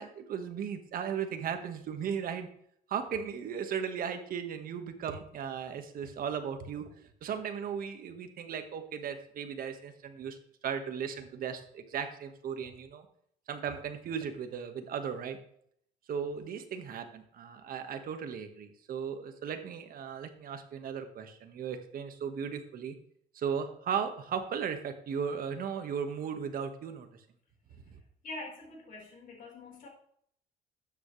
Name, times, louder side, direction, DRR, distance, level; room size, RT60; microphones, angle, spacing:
voice 1, 0.0-2.5 2.9-6.8 7.2-10.4 10.6-13.1 13.5-15.4 16.1-22.9 23.3-27.1 27.9-28.0, right 7 dB, 60° right, 7 dB, 1.6 m, -36 dB
voice 2, 28.2-29.9, left 2 dB, 55° left, -1 dB, 4.7 m, -44 dB
12.5 x 9.4 x 3.3 m, 0.68 s
cardioid pair, 110°, 17 cm